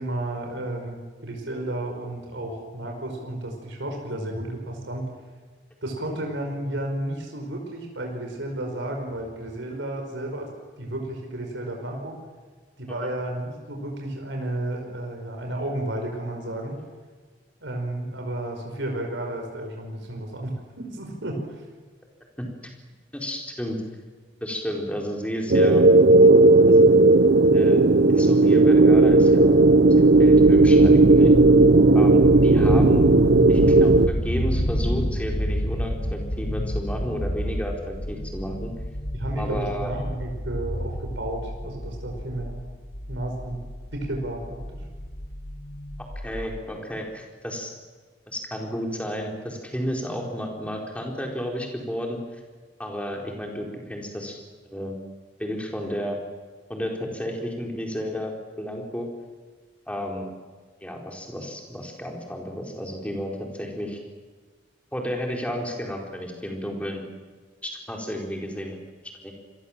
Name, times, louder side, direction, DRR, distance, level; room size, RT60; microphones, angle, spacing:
voice 1, 0.0-5.1 5.8-10.5 10.8-12.2 12.8-16.8 17.6-21.6 39.1-42.6 43.1-44.8, right 1 dB, 90° right, 2 dB, 5.2 m, -32 dB
voice 2, 23.1-23.8 24.4-25.9 26.7-26.8 27.5-29.6 30.0-31.3 31.9-33.1 33.5-38.7 39.4-39.9 46.2-47.7 48.3-52.2 52.8-54.9 55.4-56.2 56.7-59.1 59.9-60.3 60.8-64.0 64.9-67.0 67.6-68.8 69.2-69.3, equal, 5° left, 0 dB, 4.4 m, -32 dB
sound 1, 25.5-34.1, right 2 dB, 60° right, 0.7 m, -15 dB
sound 2, 28.7-46.6, equal, 45° left, 2.0 m, -29 dB
27.5 x 22.0 x 7.5 m, 1.5 s
head